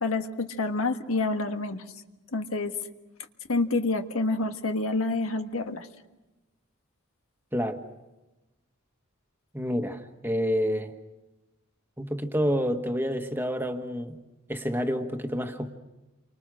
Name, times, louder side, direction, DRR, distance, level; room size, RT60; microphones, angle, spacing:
voice 1, 0.0-1.8 2.3-2.7 3.5-5.9, left 3 dB, 85° left, 6 dB, 1.5 m, -28 dB
voice 2, 9.5-10.9 12.0-14.2 14.5-15.7, equal, 10° right, 5 dB, 1.4 m, -28 dB
29.0 x 24.5 x 6.3 m, 1.1 s
head